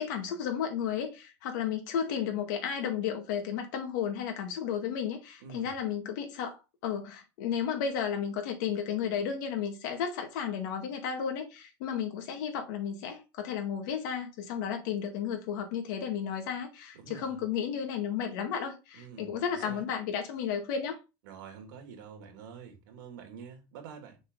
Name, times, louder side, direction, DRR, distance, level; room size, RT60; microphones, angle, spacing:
voice 1, 0.0-21.0, left 8 dB, 75° left, 2.0 m, -33 dB
voice 2, 5.4-5.7 16.9-17.4 18.9-19.8 21.2-24.2, right 7 dB, 80° right, 2.5 m, -47 dB
6.4 x 4.1 x 3.9 m
supercardioid pair, 140°, 10 cm